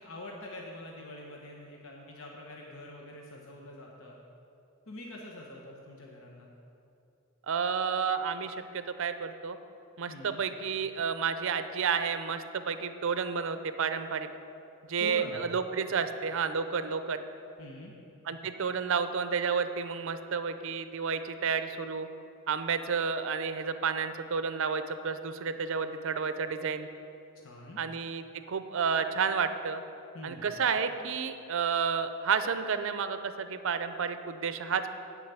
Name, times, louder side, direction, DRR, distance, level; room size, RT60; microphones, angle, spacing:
voice 1, 0.0-4.2 4.9-6.5 10.1-10.5 15.0-15.4 17.6-17.9 27.3-27.8 30.1-30.4, left 1 dB, 70° left, -1 dB, 1.0 m, -45 dB
voice 2, 7.5-9.6 10.0-14.3 14.9-17.2 18.3-22.1 22.5-26.9 27.8-29.8 30.2-34.9, right 6 dB, 65° right, 10 dB, 0.5 m, -31 dB
10.0 x 4.9 x 8.1 m, 2.8 s
head